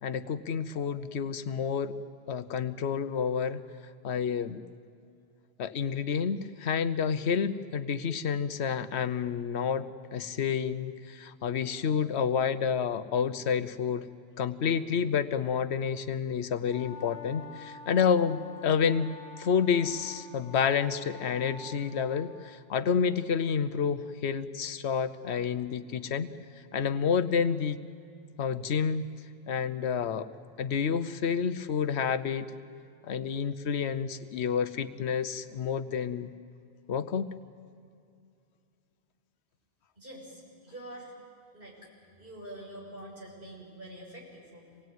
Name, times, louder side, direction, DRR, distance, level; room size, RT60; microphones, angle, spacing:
voice 1, 0.0-1.9 2.3-3.6 4.0-4.6 5.6-14.1 14.4-26.3 26.7-27.8 28.4-29.1 29.5-30.3 30.6-32.5 33.0-36.3 36.9-37.3, left 7 dB, 85° left, 12 dB, 1.1 m, -29 dB
sound 1, 16.7-22.2, left 5 dB, 75° right, 6.3 m, -47 dB
voice 2, 40.0-41.1 41.5-41.8 42.2-44.8, right 1 dB, 55° right, -3 dB, 6.8 m, -46 dB
26.0 x 19.5 x 9.3 m, 2.4 s
omnidirectional pair, 1.1 m